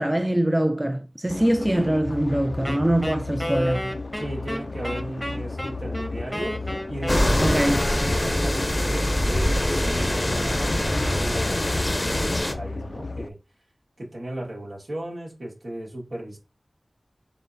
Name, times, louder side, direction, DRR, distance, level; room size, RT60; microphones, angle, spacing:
voice 1, 0.0-3.9 7.4-7.8, right 1 dB, 15° right, 0.3 m, -23 dB
sound 1, 1.3-13.3, left 3 dB, 70° left, 0.3 m, -34 dB
Wind instrument woodwind instrument, 2.6-8.7, equal, ahead, 0.9 m, -31 dB
voice 2, 4.2-13.4 14.0-16.4, right 1 dB, 75° right, 1.6 m, -36 dB
sound 2, 7.1-12.5, left 1 dB, 30° left, 0.6 m, -23 dB
3.9 x 3.7 x 2.6 m
wide cardioid pair, 70°, 0 cm